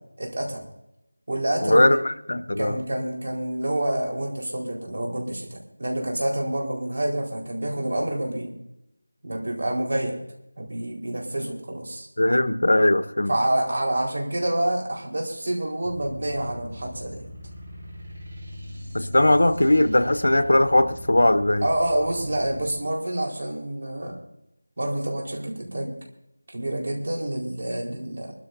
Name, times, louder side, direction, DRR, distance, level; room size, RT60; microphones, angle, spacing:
voice 1, 0.2-0.6 1.3-1.9 2.6-8.6 9.2-10.2 10.6-12.1 13.3-17.2 21.6-24.2 24.8-26.0 26.5-28.3, right 1 dB, 50° right, 0 dB, 4.5 m, -27 dB
voice 2, 1.6-2.8 12.2-13.3 18.9-21.6, left 1 dB, 75° left, 10 dB, 1.1 m, -19 dB
sound 1, 15.8-22.7, equal, 25° right, 4.4 m, -40 dB
24.5 x 13.0 x 2.7 m, 0.83 s
figure-of-eight pair, 175°, 0 cm